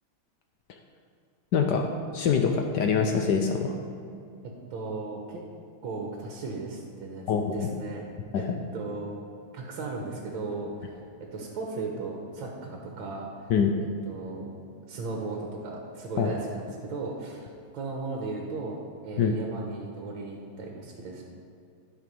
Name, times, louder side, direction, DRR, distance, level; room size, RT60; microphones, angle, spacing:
voice 1, 1.5-3.7 7.3-7.8 8.3-8.4 13.5-13.7 16.2-16.3 19.2-19.3, left 6 dB, 70° left, 4 dB, 1.0 m, -25 dB
voice 2, 4.4-5.4 5.8-8.1 8.3-8.5 8.7-9.2 9.5-11.0 11.3-13.5 14.1-14.6 14.9-21.2, right 3 dB, 70° right, 0 dB, 1.7 m, -36 dB
12.0 x 4.9 x 5.3 m, 2.4 s
omnidirectional pair, 2.4 m